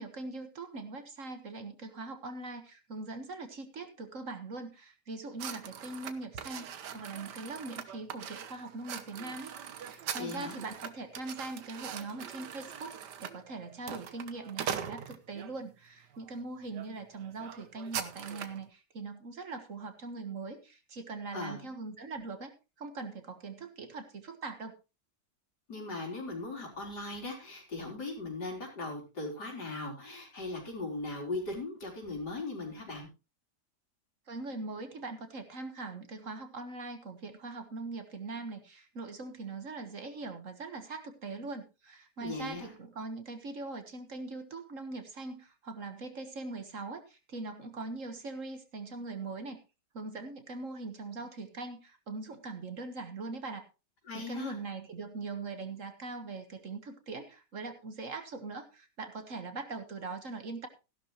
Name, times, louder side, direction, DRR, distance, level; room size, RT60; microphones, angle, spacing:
voice 1, 0.0-24.8 34.3-49.6 49.9-53.7 54.1-60.7, right 3 dB, 50° right, 8 dB, 1.7 m, -41 dB
sound 1, 5.4-15.5 16.1-16.4 16.7-16.9 17.1-18.6, right 8 dB, 75° right, 1.7 m, -41 dB
voice 2, 10.1-10.6 21.3-21.7 25.7-33.1 42.2-42.7 54.1-54.6, left 2 dB, 75° left, 0 dB, 4.7 m, -39 dB
15.0 x 11.5 x 3.1 m, 0.29 s
omnidirectional pair, 1.8 m